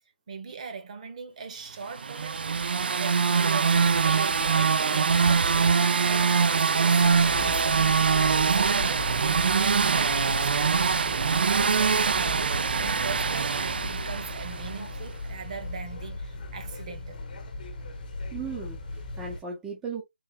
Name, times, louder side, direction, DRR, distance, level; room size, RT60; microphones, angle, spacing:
voice 1, 0.3-2.6 3.0-7.9 8.2-12.5 12.7-17.2, right 5 dB, 40° right, 1.0 m, -40 dB
sound 1, 2.0-14.9, right 5 dB, 55° right, 0.4 m, -23 dB
sound 2, 7.0-19.4, left 2 dB, 45° left, 1.1 m, -37 dB
voice 2, 18.3-20.0, right 5 dB, 5° right, 0.6 m, -36 dB
3.7 x 3.2 x 2.8 m
hypercardioid pair, 165°, 6 cm